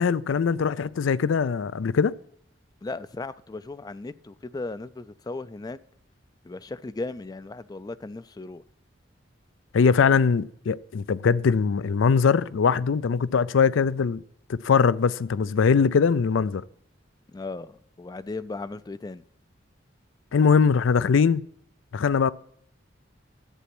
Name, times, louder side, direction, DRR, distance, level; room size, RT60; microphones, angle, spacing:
voice 1, 0.0-2.1 9.7-14.2 14.5-16.6 20.3-21.4 21.9-22.3, left 5 dB, 80° left, 0.4 m, -21 dB
voice 2, 2.8-5.8 6.4-8.6 17.3-19.2, left 3 dB, 20° left, 0.4 m, -36 dB
11.5 x 8.2 x 6.0 m
head